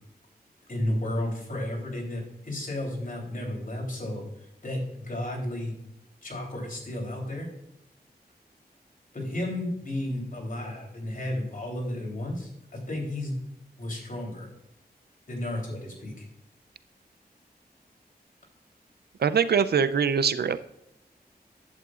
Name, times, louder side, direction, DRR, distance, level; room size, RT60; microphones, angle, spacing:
voice 1, 0.7-4.2 4.6-5.7 6.2-7.5 9.1-13.4 13.8-14.5 15.3-16.2, left 1 dB, 55° left, -1 dB, 3.4 m, -33 dB
voice 2, 19.2-20.6, right 6 dB, 75° right, 13 dB, 0.5 m, -23 dB
11.0 x 8.0 x 2.4 m, 0.84 s
wide cardioid pair, 85°, 17 cm